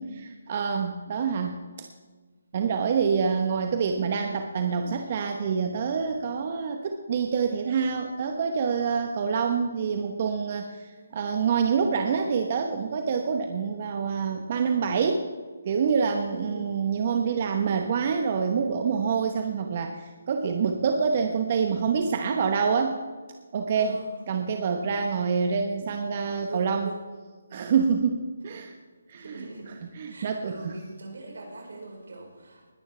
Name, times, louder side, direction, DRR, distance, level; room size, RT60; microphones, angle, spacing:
voice 1, 0.0-1.6 2.5-15.2 15.6-23.0 23.5-24.0 24.3-26.9 27.5-28.7 29.1-29.3 30.0-30.7, right 6 dB, 40° right, 5 dB, 1.0 m, -26 dB
voice 2, 10.9-11.5 16.3-16.9 23.8-24.2 26.5-27.0 29.1-32.7, right 2 dB, 75° right, 1 dB, 4.6 m, -42 dB
20.5 x 10.5 x 3.4 m, 1.4 s
hypercardioid pair, 160°, 0 cm